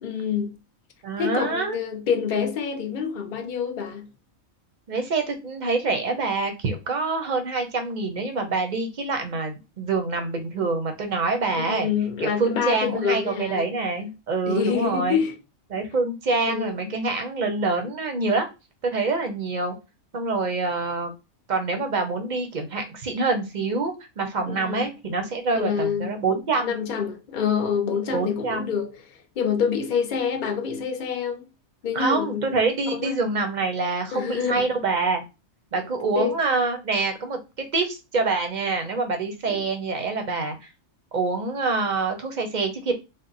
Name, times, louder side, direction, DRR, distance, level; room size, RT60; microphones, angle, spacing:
voice 1, 0.0-0.6 1.2-4.1 11.5-13.7 14.4-15.4 16.5-17.0 24.4-24.8 25.5-26.2 26.6-29.0 29.4-31.5 31.8-32.5 32.9-33.1 34.1-34.7 36.2-36.4 39.4-39.6, left 7 dB, 50° left, 0.7 m, -27 dB
voice 2, 1.0-1.8 4.9-11.9 12.2-15.2 15.7-18.5 18.8-19.7 20.1-21.1 21.5-26.7 28.1-28.7 31.9-35.2 35.7-37.4 37.7-40.6 41.1-42.9, right 3 dB, 40° right, 0.7 m, -26 dB
3.7 x 2.1 x 3.8 m
omnidirectional pair, 1.4 m